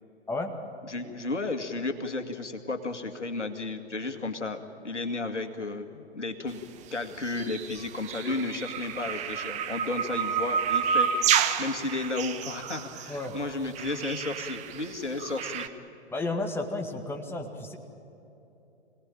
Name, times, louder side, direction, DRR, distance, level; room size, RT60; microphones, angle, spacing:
voice 1, 0.8-6.7 6.9-11.1 11.6-15.7, left 3 dB, 90° left, 6 dB, 2.1 m, -33 dB
sound 1, 7.3-15.7, right 7 dB, 20° right, 0.9 m, -30 dB
voice 2, 16.1-17.8, left 2 dB, 5° left, 3 dB, 1.9 m, -32 dB
26.0 x 18.5 x 8.9 m, 3.0 s
figure-of-eight pair, 120°, 35 cm